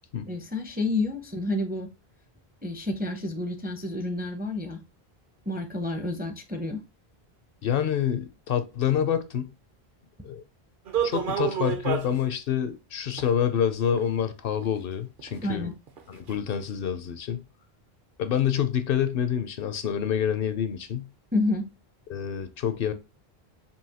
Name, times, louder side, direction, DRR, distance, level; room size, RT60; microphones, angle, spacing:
voice 1, 0.3-1.9 2.6-4.8 5.5-6.8 15.4-15.7 21.3-21.6, left 2 dB, 15° right, 0.4 m, -29 dB
voice 2, 7.6-9.5 10.2-10.4 11.0-15.7 16.1-17.4 18.2-21.1 22.1-22.9, left 9 dB, 70° left, 0.7 m, -27 dB
sound 1, 10.9-12.2 13.2-13.3 14.0-14.1 14.5-14.6 15.2-15.3 15.9-16.0 16.3-16.4, right 8 dB, 60° right, 0.9 m, -28 dB
5.5 x 2.6 x 2.8 m
omnidirectional pair, 1.0 m